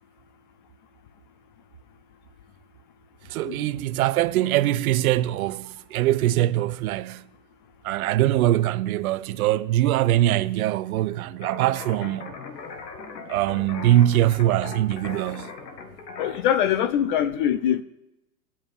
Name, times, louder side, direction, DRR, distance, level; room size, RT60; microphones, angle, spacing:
voice 1, 3.3-7.2 7.8-12.3 13.3-15.5, right 14 dB, 60° right, 0.7 m, -22 dB
sound 1, 11.4-16.4, left 4 dB, 80° left, 1.9 m, -39 dB
voice 2, 16.2-17.8, left 10 dB, 35° left, 0.4 m, -23 dB
8.8 x 7.2 x 7.1 m
hypercardioid pair, 125°, 49 cm